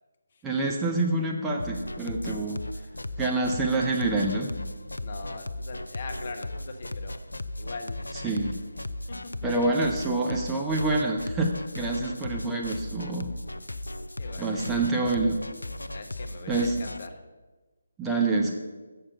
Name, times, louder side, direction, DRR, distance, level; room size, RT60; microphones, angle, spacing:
voice 1, 0.4-2.6 3.2-4.5 8.1-8.6 9.4-11.5 11.8-13.3 14.4-15.4 16.5-16.8 18.0-18.6, right 2 dB, 10° right, -1 dB, 0.7 m, -27 dB
sound 1, 1.6-17.1, left 1 dB, 75° left, 0.4 m, -37 dB
voice 2, 5.0-7.2 7.6-8.3 14.2-15.2 15.9-17.1, left 3 dB, 40° left, 5 dB, 1.0 m, -41 dB
7.2 x 6.7 x 6.5 m, 1.2 s
figure-of-eight pair, 150°, 0 cm